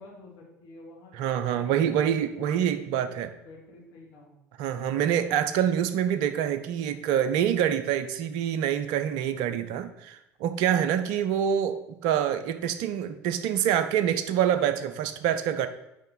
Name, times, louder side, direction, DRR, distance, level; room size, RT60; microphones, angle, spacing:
voice 1, 0.0-4.3, left 2 dB, 45° left, -3 dB, 2.7 m, -50 dB
voice 2, 1.1-3.3 4.6-15.7, right 9 dB, 55° right, 10 dB, 0.6 m, -26 dB
8.2 x 5.4 x 4.0 m, 0.87 s
figure-of-eight pair, 65°, 9 cm